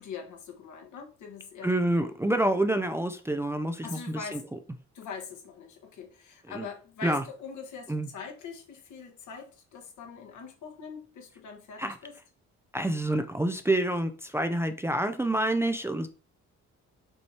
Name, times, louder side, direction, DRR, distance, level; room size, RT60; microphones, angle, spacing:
voice 1, 0.0-1.7 3.8-4.4 4.9-12.1, left 6 dB, 75° left, 1.3 m, -42 dB
voice 2, 1.6-4.4 6.5-6.7 7.0-7.2 7.9-8.1 11.8-12.0 12.7-16.1, right 1 dB, 10° right, 0.4 m, -27 dB
5.4 x 3.2 x 2.8 m
cardioid pair, 90°, 30 cm